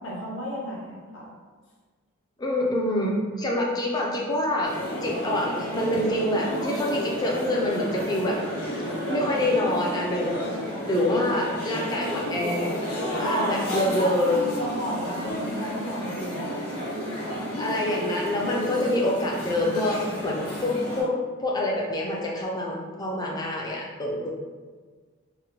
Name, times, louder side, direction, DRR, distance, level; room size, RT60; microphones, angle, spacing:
voice 1, 0.0-1.3 13.0-16.5, right 1 dB, 55° left, -4 dB, 0.7 m, -32 dB
voice 2, 2.4-4.7 5.0-8.4 9.1-10.4 10.8-14.4 17.6-21.1 21.4-24.3, left 1 dB, 20° left, -2 dB, 0.3 m, -26 dB
sound 1, 4.6-21.0, equal, 85° left, 0.9 m, -32 dB
2.8 x 2.1 x 2.8 m, 1.5 s
head